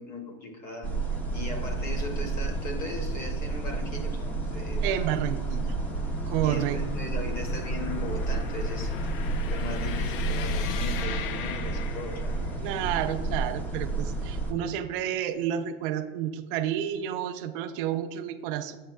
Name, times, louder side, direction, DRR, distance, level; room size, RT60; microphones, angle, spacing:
voice 1, 0.0-5.1 5.5-5.7 6.4-8.9 9.5-12.4 14.6-14.7, left 2 dB, 30° left, 3 dB, 0.8 m, -38 dB
sound 1, 0.8-14.5, right 3 dB, 5° left, 0.5 m, -31 dB
sound 2, 1.2-12.6, left 5 dB, 60° left, 0.5 m, -37 dB
voice 2, 4.8-5.7 6.3-6.8 12.6-18.8, right 10 dB, 60° right, 8 dB, 0.5 m, -30 dB
7.7 x 7.4 x 2.2 m, 1.3 s
supercardioid pair, 155°, 32 cm